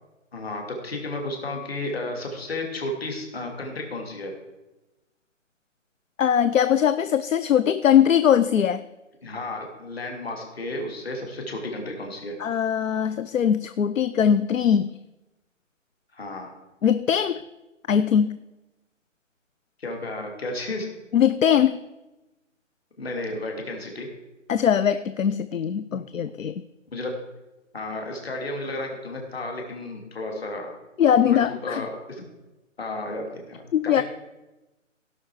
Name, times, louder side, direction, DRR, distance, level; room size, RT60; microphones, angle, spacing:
voice 1, 0.3-4.3 9.2-12.4 16.1-16.5 19.8-20.9 23.0-24.1 25.9-26.0 26.9-27.1 27.7-30.7 31.2-32.2 32.8-34.0, left 2 dB, 50° left, 2 dB, 2.7 m, -33 dB
voice 2, 6.2-8.8 12.4-14.9 16.8-17.4 17.9-18.4 21.1-21.8 24.5-26.6 31.0-31.8 33.7-34.0, left 8 dB, 80° left, 13 dB, 0.6 m, -21 dB
17.0 x 5.9 x 4.8 m, 1.0 s
hypercardioid pair, 170°, 39 cm